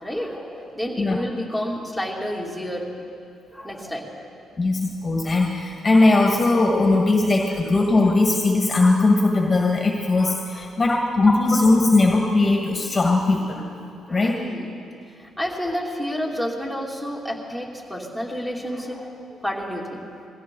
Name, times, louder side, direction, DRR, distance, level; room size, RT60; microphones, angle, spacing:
voice 1, 0.0-2.9 3.5-4.3 7.5-7.6 10.5-10.7 14.1-14.7 15.2-20.0, equal, 5° right, -2 dB, 2.9 m, -30 dB
voice 2, 4.6-13.6 14.1-14.4, left 2 dB, 30° left, 1 dB, 1.6 m, -19 dB
22.0 x 16.0 x 3.9 m, 2.5 s
cardioid pair, 90°, 0 cm